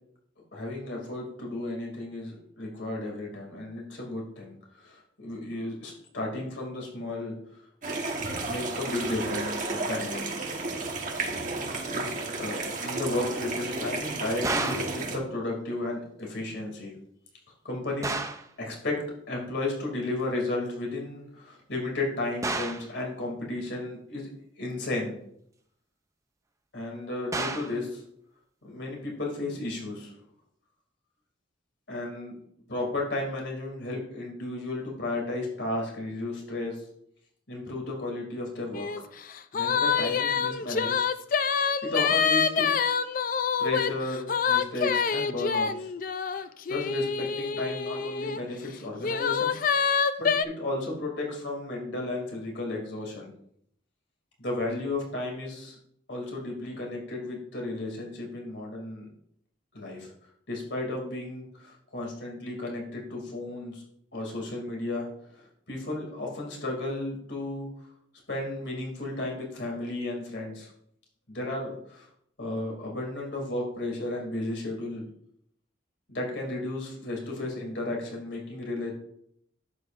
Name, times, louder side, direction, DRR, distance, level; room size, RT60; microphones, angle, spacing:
voice 1, 0.5-7.4 8.4-10.3 11.9-16.9 17.6-18.2 18.6-19.0 19.3-24.3 24.6-25.2 26.7-28.0 28.6-30.1 31.9-32.4 32.7-36.8 37.5-39.1 39.5-41.0 41.8-42.7 43.6-45.9 46.3-49.6 49.9-53.3 54.4-55.8 56.1-59.1 59.7-60.1 60.5-63.8 64.1-65.1 65.3-67.7 68.3-70.7 71.3-72.1 72.4-75.0 76.1-78.9, left 2 dB, 65° left, -1 dB, 2.6 m, -33 dB
sound 1, 7.8-15.2, right 3 dB, 40° right, 1.3 m, -32 dB
sound 2, 14.4-15.0 18.0-18.5 22.4-22.9 27.3-27.8, right 3 dB, 15° right, 0.5 m, -31 dB
sound 3, 38.7-39.0 39.3-48.4 49.0-50.4, left 6 dB, 45° left, 0.4 m, -26 dB
11.5 x 8.0 x 2.5 m, 0.69 s
head